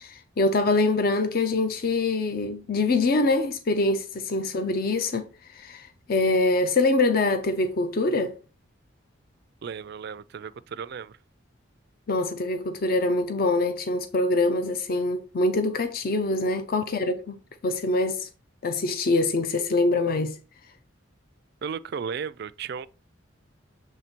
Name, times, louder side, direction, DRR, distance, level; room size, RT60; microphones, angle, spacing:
voice 1, 0.0-8.4 12.1-18.3 18.6-20.4, left 2 dB, 50° left, 0.5 m, -24 dB
voice 2, 9.6-11.2 21.6-22.9, right 6 dB, 55° right, 0.4 m, -34 dB
7.3 x 3.2 x 4.4 m
head